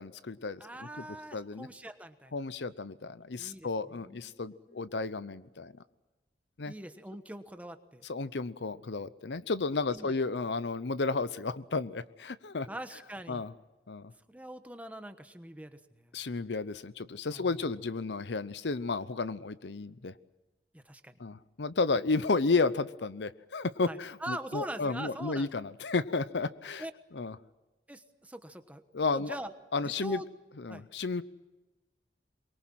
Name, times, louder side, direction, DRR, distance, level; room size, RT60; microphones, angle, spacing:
voice 1, 0.0-0.6 1.3-1.7 2.3-5.7 6.6-6.7 8.1-12.7 13.3-13.5 13.9-14.1 16.1-20.1 21.2-26.8 27.1-27.3 28.9-29.4 29.7-30.2 30.6-31.2, left 3 dB, 75° left, 15 dB, 0.7 m, -32 dB
voice 2, 0.6-2.3 3.4-5.1 6.7-8.0 9.8-10.1 12.7-13.4 14.3-16.2 17.3-17.6 20.7-21.2 23.9-25.5 26.8-26.9 27.9-29.5 29.8-30.3 30.7-30.9, right 1 dB, 10° right, 8 dB, 1.2 m, -43 dB
23.0 x 22.5 x 7.6 m, 1.1 s
head